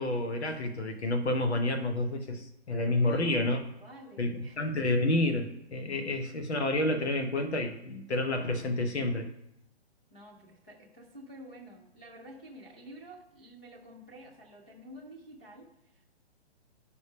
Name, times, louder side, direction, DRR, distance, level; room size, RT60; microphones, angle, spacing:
voice 1, 0.0-3.6 4.2-9.3, left 2 dB, 80° left, 6 dB, 1.4 m, -29 dB
voice 2, 2.9-4.8 10.1-16.1, right 1 dB, 5° left, -4 dB, 0.4 m, -50 dB
11.0 x 5.3 x 3.4 m, 0.81 s
hypercardioid pair, 165°, 33 cm